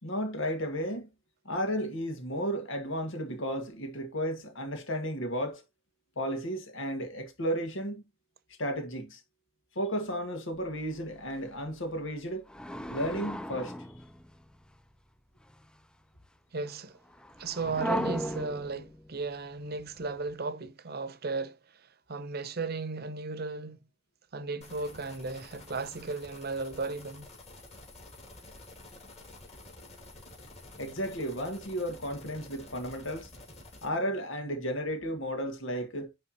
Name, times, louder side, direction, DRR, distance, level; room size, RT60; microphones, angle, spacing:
voice 1, 0.0-1.1 1.5-5.6 6.2-8.0 8.6-9.2 9.8-12.5 12.9-13.7 30.8-33.3 33.8-36.1, equal, 85° left, 1.9 m, -33 dB
sound 1, 10.6-11.0 11.3-11.4 12.5-14.8 15.4-15.7 17.1-20.3, equal, 5° left, 0.4 m, -37 dB
voice 2, 16.5-17.0 17.4-23.8 24.3-27.3, right 3 dB, 55° right, 0.8 m, -35 dB
sound 2, 24.6-33.9, left 2 dB, 35° left, 2.6 m, -50 dB
9.6 x 3.5 x 2.9 m
head